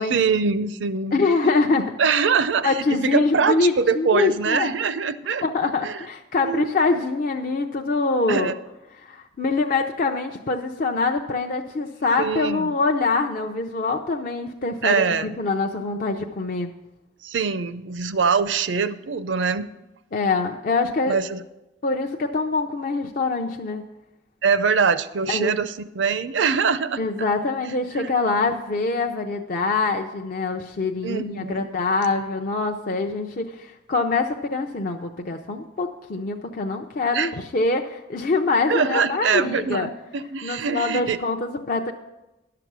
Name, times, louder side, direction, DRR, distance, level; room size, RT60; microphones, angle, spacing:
voice 1, 0.0-1.3 2.0-5.4 5.8-6.0 6.4-7.0 8.3-8.6 12.2-12.7 14.8-15.4 17.2-19.7 21.1-21.4 24.4-27.0 28.0-28.1 31.0-31.7 37.1-37.3 38.7-41.2, right 5 dB, 75° right, 13 dB, 0.5 m, -23 dB
voice 2, 1.1-2.2 2.6-4.7 5.4-8.5 9.0-16.7 20.1-21.2 21.8-23.8 25.3-25.6 27.0-39.9 40.4-41.9, left 3 dB, 45° left, 3 dB, 0.5 m, -24 dB
11.5 x 6.8 x 6.0 m, 0.98 s
head